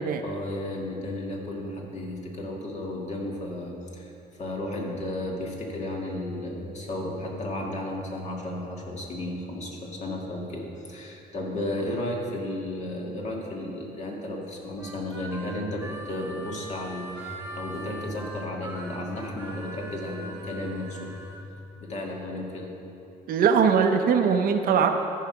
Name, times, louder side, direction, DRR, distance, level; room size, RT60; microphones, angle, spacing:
voice 1, 0.2-4.1 4.4-22.7, left 1 dB, 45° left, -1 dB, 2.0 m, -33 dB
Harmonica, 14.8-21.4, right 1 dB, 10° right, 1.5 m, -42 dB
voice 2, 23.3-24.9, right 6 dB, 60° right, 6 dB, 0.7 m, -21 dB
14.0 x 4.9 x 5.9 m, 2.8 s
cardioid pair, 110°, 17 cm